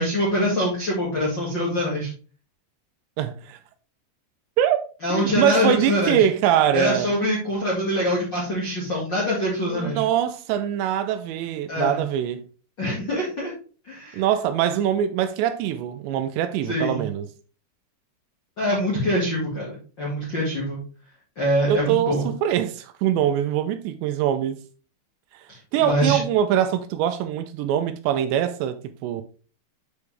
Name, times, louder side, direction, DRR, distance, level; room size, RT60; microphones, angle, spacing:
voice 1, 0.0-2.1 5.0-6.2 6.7-10.0 11.7-12.0 12.8-13.5 13.8-14.2 16.7-17.0 18.6-20.8 21.3-22.3 25.5-26.2, equal, 55° left, 1.2 m, -24 dB
voice 2, 3.2-3.6 4.6-4.8 5.1-7.2 9.7-12.4 14.1-17.3 21.7-24.6 25.3-25.4 25.7-29.2, right 10 dB, 85° right, 2.6 m, -23 dB
8.1 x 5.0 x 3.3 m
omnidirectional pair, 5.3 m